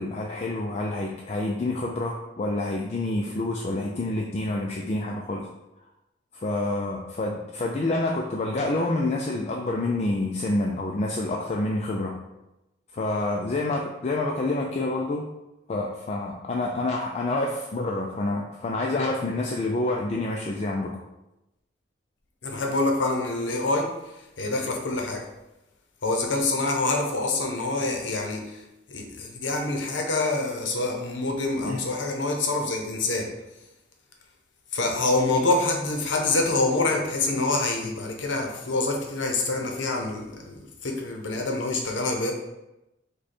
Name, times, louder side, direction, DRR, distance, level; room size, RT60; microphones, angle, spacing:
voice 1, 0.0-5.5 6.3-12.1 12.9-15.3 15.7-21.0 31.6-31.8, left 2 dB, 35° left, 0 dB, 0.4 m, -28 dB
voice 2, 22.4-23.9 24.4-25.2 26.0-28.4 28.9-33.3 34.7-42.3, left 2 dB, 90° left, 2 dB, 0.8 m, -26 dB
5.1 x 2.3 x 4.2 m, 0.94 s
head